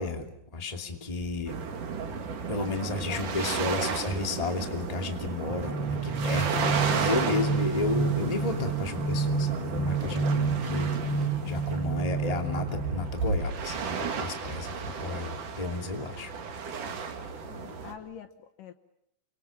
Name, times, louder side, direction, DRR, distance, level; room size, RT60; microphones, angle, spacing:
voice 1, 0.0-1.6 2.5-16.3, left 3 dB, 10° left, 4 dB, 1.9 m, -33 dB
sound 1, 1.5-17.9, right 5 dB, 55° right, 3.8 m, -33 dB
voice 2, 2.5-3.7 17.4-18.7, left 9 dB, 65° left, 9 dB, 2.5 m, -45 dB
sound 2, 5.4-13.3, right 4 dB, 35° right, 5.4 m, -29 dB
29.5 x 25.5 x 7.2 m, 0.77 s
omnidirectional pair, 4.5 m